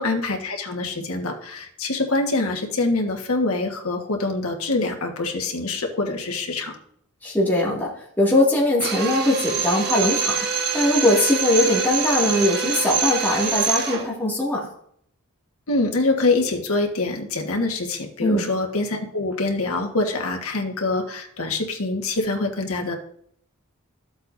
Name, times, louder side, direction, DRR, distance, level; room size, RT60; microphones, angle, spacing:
voice 1, 0.0-6.7 15.7-22.9, left 2 dB, 80° left, 3 dB, 1.5 m, -25 dB
voice 2, 7.2-10.4 10.7-14.7 18.2-18.5, left 1 dB, 10° left, -5 dB, 2.3 m, -21 dB
Drill, 8.8-14.1, right 6 dB, 45° right, 1.5 m, -25 dB
14.0 x 7.9 x 2.7 m, 0.67 s
head